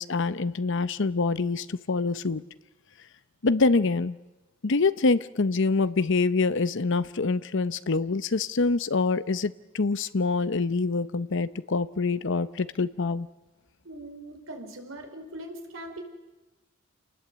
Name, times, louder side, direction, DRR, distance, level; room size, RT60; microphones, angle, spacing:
voice 1, 0.0-2.4 3.4-4.2 4.6-13.3, left 3 dB, 65° left, 14 dB, 0.8 m, -25 dB
voice 2, 13.8-16.0, right 1 dB, 75° right, 4 dB, 4.8 m, -41 dB
28.5 x 20.0 x 8.1 m, 1.1 s
head